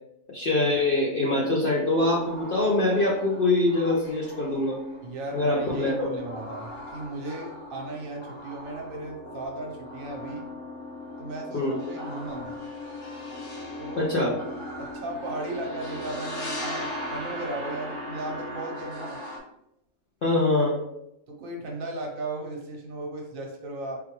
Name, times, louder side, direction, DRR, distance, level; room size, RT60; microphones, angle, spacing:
voice 1, 0.3-4.8 5.3-6.1 11.5-11.7 14.0-14.3 20.2-20.8, left 2 dB, 60° left, -4 dB, 0.6 m, -24 dB
sound 1, 2.0-19.4, left 1 dB, 85° left, 1.5 m, -38 dB
voice 2, 5.0-10.5 11.2-12.6 13.8-19.2 21.3-24.0, right 2 dB, 70° right, 0 dB, 1.1 m, -36 dB
3.8 x 2.2 x 3.0 m, 0.81 s
omnidirectional pair, 1.5 m